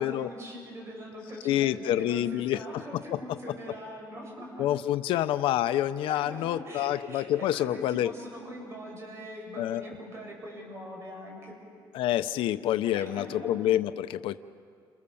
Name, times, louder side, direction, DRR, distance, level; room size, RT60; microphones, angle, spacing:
voice 1, 0.0-4.7 5.1-5.2 6.1-11.6 12.9-13.7, equal, 30° right, -1 dB, 7.8 m, -42 dB
voice 2, 1.4-2.6 3.1-3.2 4.6-8.1 9.6-9.8 11.9-14.4, left 12 dB, 85° left, 11 dB, 0.7 m, -27 dB
29.5 x 28.0 x 7.1 m, 2.3 s
cardioid pair, 155°, 9 cm